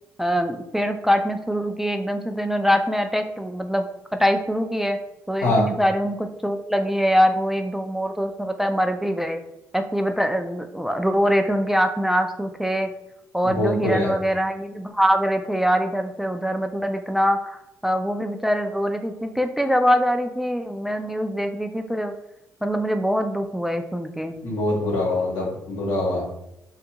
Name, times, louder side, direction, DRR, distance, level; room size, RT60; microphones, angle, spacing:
voice 1, 0.2-3.8 4.1-5.0 5.3-9.4 9.7-12.9 13.3-17.6 17.8-22.1 22.6-24.4, equal, 5° right, 6 dB, 0.3 m, -23 dB
voice 2, 13.4-14.1 24.4-26.2, left 1 dB, 90° left, -3 dB, 0.9 m, -23 dB
2.5 x 2.3 x 2.8 m, 0.86 s
supercardioid pair, 55°, 7 cm